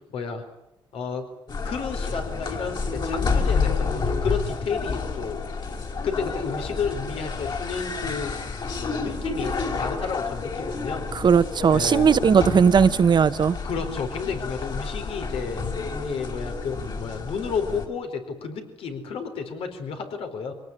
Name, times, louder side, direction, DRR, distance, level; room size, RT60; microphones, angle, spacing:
voice 1, 0.1-0.4 0.9-1.2 1.6-5.5 6.0-8.3 8.8-11.1 11.7-12.1 13.6-15.6 16.0-20.5, left 5 dB, 85° left, 4.3 m, -31 dB
sound 1, 1.5-17.9, left 4 dB, 50° left, 4.9 m, -29 dB
voice 2, 11.1-13.6, right 6 dB, 50° right, 1.0 m, -18 dB
25.0 x 18.5 x 9.9 m
cardioid pair, 90°, 10 cm